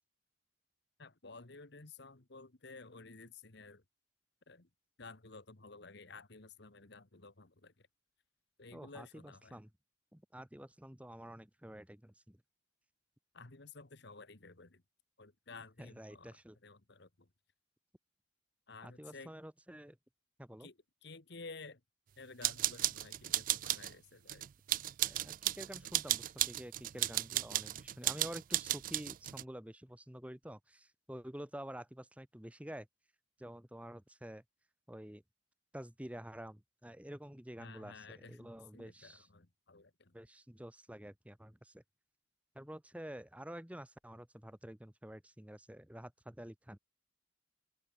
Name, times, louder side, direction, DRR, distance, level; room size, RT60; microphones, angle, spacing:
voice 1, 1.0-3.8 4.5-4.7 5.0-7.7 8.6-9.6 13.3-14.8 15.2-16.3 16.6-17.3 18.7-19.3 20.6-20.8 21.0-21.8 22.2-24.5 25.0-25.1 26.9-27.1 37.6-40.1, left 3 dB, 60° left, 1.6 m, -53 dB
voice 2, 8.7-9.7 10.1-12.4 15.8-16.6 18.8-20.0 20.4-20.7 25.0-32.9 33.4-34.4 34.9-35.2 35.7-39.3 40.1-41.8 42.5-46.8, equal, 5° right, 1.2 m, -49 dB
sound 1, 22.4-23.9 24.3-29.4, right 14 dB, 45° right, 0.3 m, -35 dB
open air
head